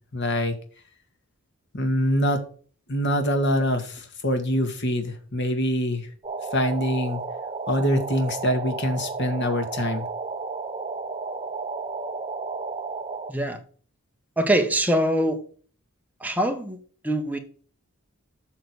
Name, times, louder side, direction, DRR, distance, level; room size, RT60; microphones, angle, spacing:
voice 1, 0.1-0.5 1.7-2.4 2.9-6.1 6.5-7.2 7.7-10.0, equal, 55° left, 2.0 m, -24 dB
sound 1, 6.2-13.3, right 4 dB, 25° right, 0.9 m, -33 dB
voice 2, 13.3-13.6 14.4-15.4 16.2-16.8 17.0-17.4, right 1 dB, 10° right, 1.5 m, -23 dB
7.7 x 6.7 x 6.3 m
head